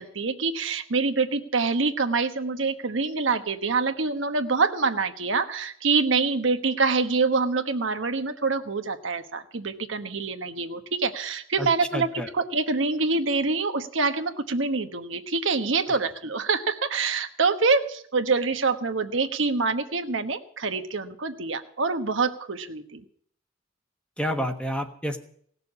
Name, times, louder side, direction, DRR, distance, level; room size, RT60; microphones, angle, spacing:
voice 1, 0.0-23.0, right 4 dB, 75° right, 7 dB, 1.2 m, -26 dB
voice 2, 11.9-12.3 24.2-25.2, equal, 5° left, 5 dB, 1.2 m, -29 dB
17.5 x 6.8 x 9.8 m, 0.62 s
head